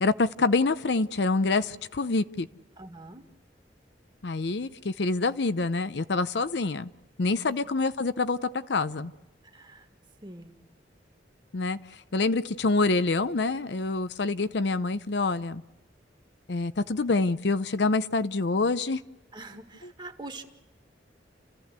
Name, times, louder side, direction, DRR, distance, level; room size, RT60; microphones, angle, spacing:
voice 1, 0.0-2.5 4.2-6.9 7.2-9.1 11.5-15.6 16.5-19.0, left 3 dB, 65° left, 13 dB, 0.7 m, -26 dB
voice 2, 2.8-3.2 7.4-7.5 9.4-9.9 10.2-10.6 19.3-20.4, right 2 dB, 25° right, 5 dB, 1.9 m, -44 dB
29.5 x 14.5 x 8.2 m, 1.0 s
head